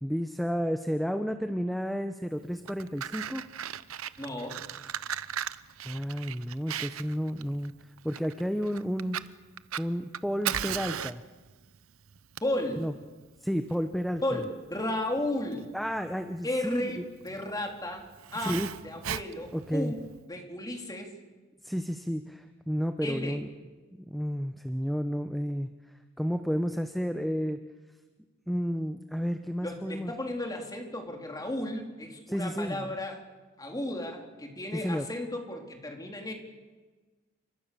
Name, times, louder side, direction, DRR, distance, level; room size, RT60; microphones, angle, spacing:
voice 1, 0.0-3.4 5.8-9.2 9.8-11.2 12.8-12.9 13.4-14.4 15.7-17.0 18.4-18.7 19.5-19.9 21.6-23.5 23.9-25.7 26.2-27.6 28.5-30.1 32.3-32.9 34.8-35.0, equal, ahead, 7 dB, 0.9 m, -31 dB
Fire, 2.5-20.2, right 9 dB, 80° right, 0.8 m, -38 dB
voice 2, 4.2-4.6 12.4-12.8 14.2-15.7 16.4-18.0 18.3-18.6 18.8-20.0 20.3-21.1 23.0-23.4 29.6-33.2 33.6-36.3, left 1 dB, 15° left, 2 dB, 3.6 m, -34 dB
29.5 x 25.0 x 6.9 m, 1.3 s
head